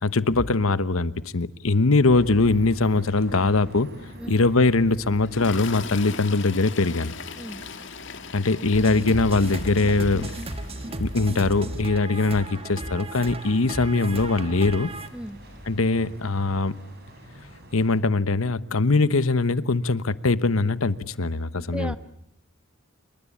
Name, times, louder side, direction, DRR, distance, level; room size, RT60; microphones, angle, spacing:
voice 1, 0.0-3.9 4.3-7.1 8.3-10.3 11.0-14.9 15.7-16.8 17.7-22.0, left 3 dB, 85° left, 1.1 m, -22 dB
sound 1, 2.0-18.0, equal, 50° right, 6.2 m, -45 dB
Toilet flush, 5.2-15.5 16.5-16.6 16.9-17.1, left 5 dB, 60° left, 2.1 m, -41 dB
sound 2, 8.7-15.1, right 1 dB, 30° right, 1.5 m, -34 dB
voice 2, 21.5-22.0, equal, 5° right, 1.2 m, -36 dB
28.0 x 23.0 x 8.5 m
head